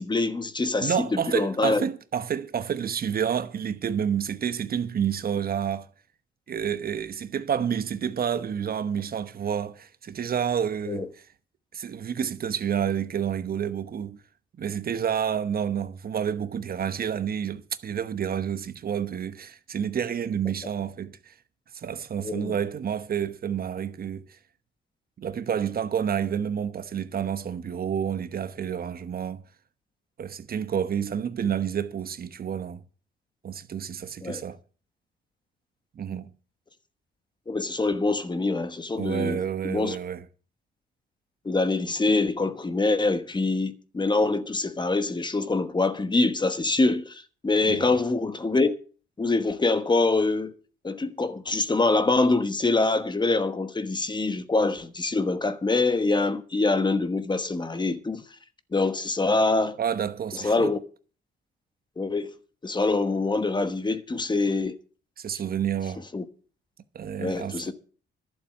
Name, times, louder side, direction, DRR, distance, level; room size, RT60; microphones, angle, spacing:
voice 1, 0.0-1.8 10.9-11.1 22.2-22.6 34.2-34.4 37.5-40.0 41.4-48.7 49.2-50.5 50.8-58.2 58.7-59.8 60.3-60.8 62.0-62.3 62.6-64.8 66.1-66.2 67.2-67.7, left 3 dB, 20° left, 1.2 m, -25 dB
voice 2, 0.8-5.9 6.5-11.1 11.7-14.2 14.6-21.3 21.7-24.4 25.2-29.4 30.2-32.8 33.4-34.6 35.9-36.3 39.0-40.2 47.6-47.9 59.8-60.7 65.2-66.0 66.9-67.7, right 8 dB, 50° right, 1.0 m, -29 dB
11.5 x 7.2 x 8.6 m
cardioid pair, 90°, 20 cm